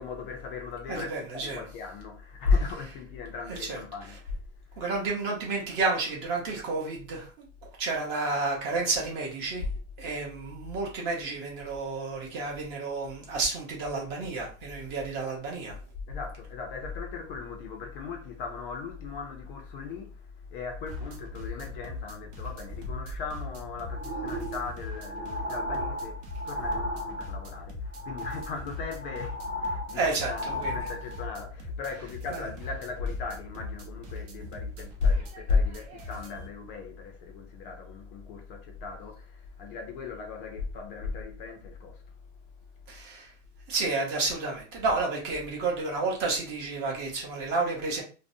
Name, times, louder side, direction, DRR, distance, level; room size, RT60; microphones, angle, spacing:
voice 1, 0.0-4.4 4.7-4.8 16.1-42.1, left 4 dB, 45° left, 0.4 m, -35 dB
voice 2, 0.9-1.6 3.5-3.8 4.8-7.4 7.8-9.7 10.0-15.8 29.9-30.8 32.3-32.4 42.9-43.3 43.7-48.0, right 3 dB, 30° right, 0.6 m, -31 dB
sound 1, 20.9-36.5, left 2 dB, 60° right, 0.9 m, -41 dB
sound 2, 23.9-27.6 27.9-28.6 28.9-31.4 31.9-32.0, equal, 80° right, 1.0 m, -35 dB
2.6 x 2.0 x 2.5 m
supercardioid pair, 170°, 38 cm